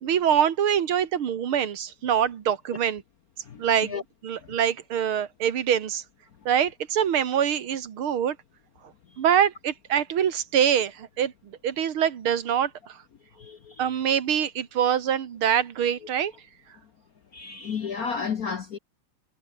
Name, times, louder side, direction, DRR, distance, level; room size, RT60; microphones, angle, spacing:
voice 1, 0.0-3.0 3.6-4.0 4.2-6.0 6.5-8.4 9.2-13.0 13.8-16.3, right 9 dB, 70° right, 2.4 m, -24 dB
voice 2, 3.5-4.0 13.4-13.9 17.3-18.8, left 6 dB, 50° left, 1.3 m, -32 dB
omnidirectional pair, 2.4 m